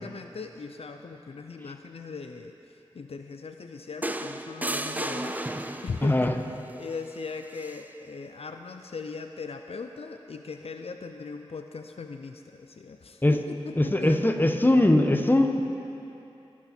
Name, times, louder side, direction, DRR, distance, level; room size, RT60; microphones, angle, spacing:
voice 1, 0.0-2.5 2.9-6.3 6.7-14.2, left 4 dB, 75° left, 6 dB, 0.5 m, -39 dB
sound 1, 4.0-6.2 7.6-7.8, right 1 dB, 15° right, 0.5 m, -33 dB
voice 2, 6.0-6.3 13.2-13.3 13.8-15.6, left 1 dB, 20° left, 5 dB, 1.1 m, -21 dB
23.5 x 8.5 x 4.4 m, 2.8 s
wide cardioid pair, 50°, 10 cm